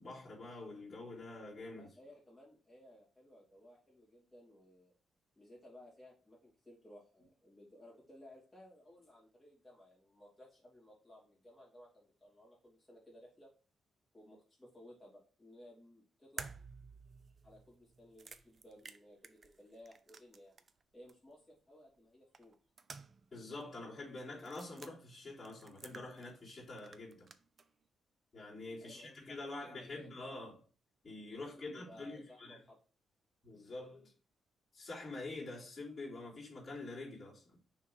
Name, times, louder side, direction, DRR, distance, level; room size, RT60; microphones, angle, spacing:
voice 1, 0.0-1.9 23.3-27.3 28.3-30.6 31.0-32.6 33.4-34.1 34.7-37.6, left 2 dB, 20° left, 3.3 m, -46 dB
voice 2, 1.7-4.9 5.3-13.5 14.1-16.5 17.4-20.6 20.9-22.5 28.8-29.3 29.6-30.1 31.7-32.8, left 1 dB, ahead, 3.3 m, -58 dB
sound 1, 16.4-20.8 21.1-21.2 22.3-23.3 23.6-23.7 24.4-24.9 25.4-26.5 26.8-27.7, right 5 dB, 30° right, 0.4 m, -52 dB
6.4 x 3.8 x 4.4 m
wide cardioid pair, 175°, 0 cm